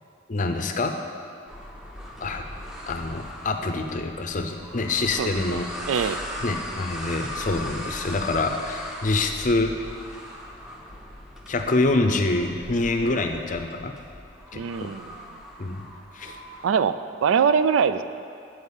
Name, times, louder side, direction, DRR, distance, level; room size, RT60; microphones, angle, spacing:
voice 1, 0.3-0.9 2.2-2.4 2.9-6.2 6.4-9.7 11.5-13.9 14.5-14.9 15.6-15.8 16.1-16.4, left 2 dB, 40° left, 5 dB, 0.5 m, -26 dB
sound 1, 1.5-16.7, left 1 dB, ahead, 0.6 m, -38 dB
voice 2, 5.2-5.6 5.9-6.2 14.5-15.2 16.6-18.0, right 6 dB, 80° right, 12 dB, 0.3 m, -23 dB
8.2 x 4.6 x 7.2 m, 2.4 s
head